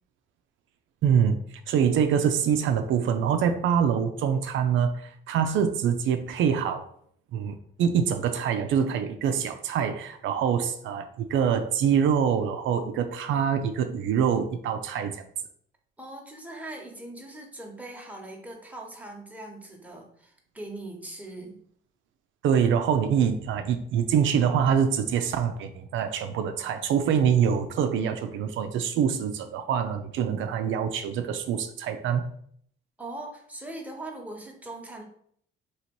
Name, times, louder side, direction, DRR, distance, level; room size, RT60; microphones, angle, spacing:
voice 1, 1.0-1.4 1.7-6.9 7.3-15.2 22.4-32.3, right 7 dB, 80° right, 7 dB, 0.4 m, -25 dB
voice 2, 16.0-21.5 33.0-35.0, right 2 dB, 5° right, 0 dB, 1.0 m, -40 dB
3.0 x 2.8 x 4.5 m, 0.64 s
cardioid pair, 90°, 20 cm